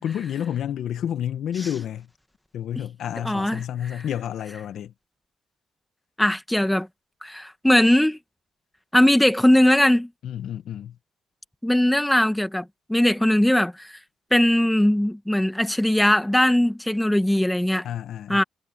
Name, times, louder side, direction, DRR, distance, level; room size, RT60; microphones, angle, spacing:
voice 1, 0.0-2.1 2.5-4.9 10.2-11.0 17.8-18.4, left 10 dB, 70° left, 1.4 m, -30 dB
voice 2, 3.2-3.6 6.2-6.9 7.2-8.2 8.9-10.1 11.6-14.0 14.3-17.8 18.3-18.4, left 1 dB, 5° left, 1.6 m, -20 dB
cardioid pair, 90°, 0 cm